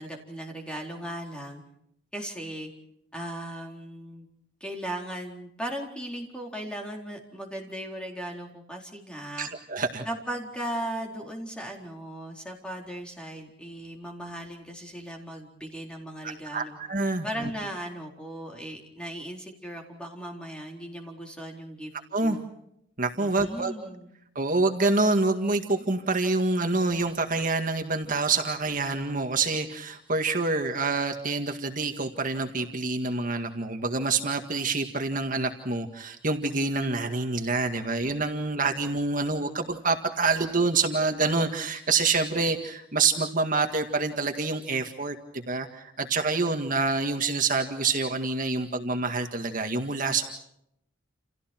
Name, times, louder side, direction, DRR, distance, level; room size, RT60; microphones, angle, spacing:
voice 1, 0.0-1.6 2.1-2.7 3.1-4.3 4.6-9.5 10.0-16.8 17.2-21.9 22.2-22.4 23.2-24.1, right 1 dB, 5° left, 1 dB, 4.2 m, -37 dB
voice 2, 9.4-10.1 16.2-17.5 22.1-22.4 23.0-23.7 24.4-50.2, right 3 dB, 45° right, 5 dB, 1.9 m, -27 dB
29.5 x 29.0 x 4.6 m, 0.76 s
head